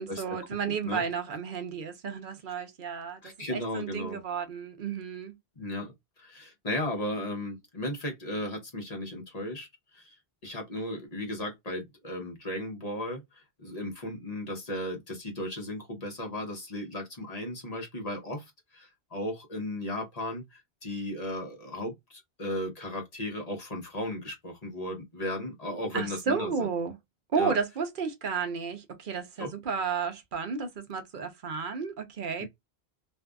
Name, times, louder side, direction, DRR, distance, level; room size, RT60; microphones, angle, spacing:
voice 1, 0.0-5.3 25.9-26.9 27.3-32.5, right 6 dB, 55° right, 0.7 m, -32 dB
voice 2, 0.7-1.0 3.2-4.2 5.6-9.7 9.9-10.1 10.4-26.7 27.4-27.5 29.4-29.5 32.4-32.5, left 1 dB, 40° left, 0.9 m, -35 dB
2.6 x 2.4 x 2.2 m
omnidirectional pair, 1.1 m